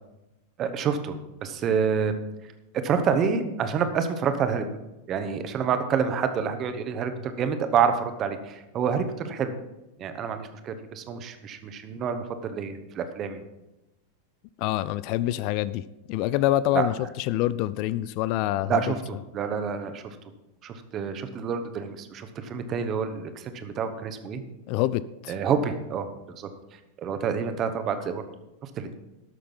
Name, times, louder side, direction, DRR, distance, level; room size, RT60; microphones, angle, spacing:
voice 1, 0.6-2.1 2.8-4.7 5.1-9.5 10.0-13.4 16.7-16.9 18.7-20.2 20.6-24.4 25.3-28.2 28.6-29.0, right 6 dB, 30° right, 9 dB, 1.1 m, -28 dB
voice 2, 14.6-15.8 16.1-18.8 24.7-25.4, left 14 dB, 45° left, 17 dB, 0.3 m, -26 dB
12.5 x 6.6 x 5.5 m, 0.97 s
figure-of-eight pair, 90°, 0 cm